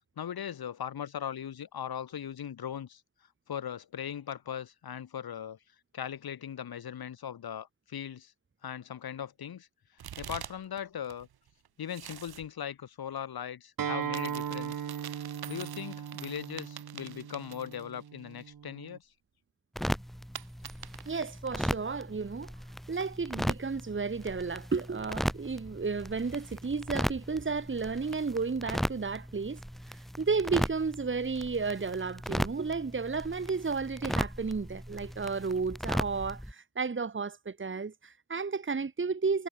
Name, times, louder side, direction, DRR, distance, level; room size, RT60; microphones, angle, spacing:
voice 1, 0.2-3.0 3.5-5.6 5.9-8.3 8.6-9.7 10.2-11.3 11.8-14.7 15.5-19.1, left 9 dB, 75° left, 4.9 m, -39 dB
sound 1, 10.0-10.8 11.0-12.5 14.0-18.0 18.4-18.5 20.3-21.2, right 10 dB, 85° right, 5.1 m, -45 dB
Acoustic guitar, 13.8-19.0, right 8 dB, 65° right, 1.9 m, -38 dB
sound 2, 19.8-36.5, equal, ahead, 3.4 m, -37 dB
voice 2, 21.1-22.5 22.9-29.6 29.9-39.5, right 4 dB, 30° right, 1.9 m, -32 dB
cardioid pair, 65°, 37 cm